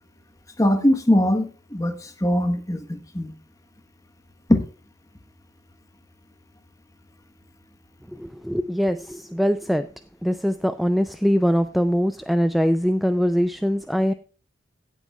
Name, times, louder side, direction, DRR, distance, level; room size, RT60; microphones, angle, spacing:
voice 1, 0.6-3.3 4.5-4.6, left 1 dB, 20° left, 7 dB, 1.2 m, -21 dB
voice 2, 8.1-9.9 10.2-14.1, equal, ahead, 10 dB, 0.3 m, -22 dB
16.5 x 8.3 x 2.3 m, 0.35 s
head